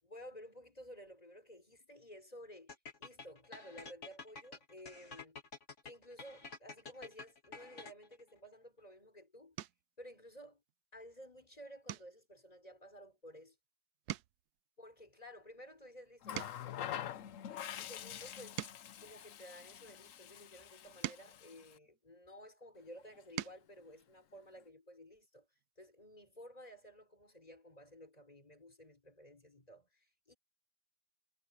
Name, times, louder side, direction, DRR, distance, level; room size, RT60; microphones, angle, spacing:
voice 1, 0.0-5.4 5.8-9.6 10.0-10.6 10.9-13.6 14.8-17.2 17.7-18.6 19.0-25.5 25.8-30.3, equal, 15° left, 5.0 m, -54 dB
sound 1, 2.7-8.2, left 4 dB, 35° left, 2.7 m, -50 dB
sound 2, 8.7-9.0 9.5-10.0 10.5-10.8 11.1-11.3 11.8-13.7 13.9-16.9 17.5-20.0 20.6-22.5 23.0-23.7 25.1-25.2 25.5-25.7, right 13 dB, 75° right, 0.9 m, -48 dB
Water tap faucet, 16.2-21.8 23.0-23.2, left 10 dB, 75° left, 0.7 m, -46 dB
omnidirectional pair, 2.2 m